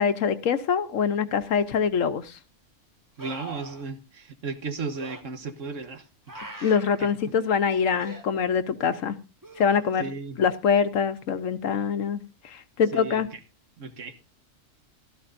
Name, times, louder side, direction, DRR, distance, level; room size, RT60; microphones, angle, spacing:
voice 1, 0.0-2.3 6.6-9.2 9.6-10.1 10.4-13.3, left 6 dB, 80° left, 12 dB, 1.2 m, -24 dB
sound 1, 1.6-1.7 3.2-3.8 4.9-5.2 6.3-7.0 8.0-8.2 9.4-10.1 13.2-13.3, right 2 dB, 15° right, 1.5 m, -42 dB
voice 2, 3.2-6.0 6.6-7.1 10.0-10.4 12.9-13.4 13.8-14.1, right 4 dB, 70° right, 9 dB, 1.6 m, -35 dB
16.0 x 13.5 x 2.6 m, 0.30 s
omnidirectional pair, 1.4 m